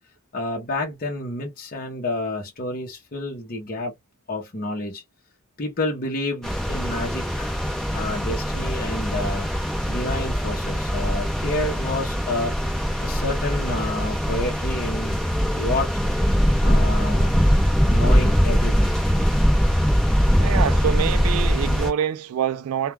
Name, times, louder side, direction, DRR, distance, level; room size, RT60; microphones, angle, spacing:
voice 1, 0.3-3.9 4.3-5.0 5.6-7.6 7.9-12.5 13.0-15.2 15.5-15.9 16.6-17.3 17.9-18.9, left 2 dB, 40° left, 0.7 m, -29 dB
sound 1, 6.4-21.9, equal, ahead, 0.7 m, -22 dB
voice 2, 20.4-22.9, right 9 dB, 70° right, 0.3 m, -25 dB
2.2 x 2.2 x 3.1 m
head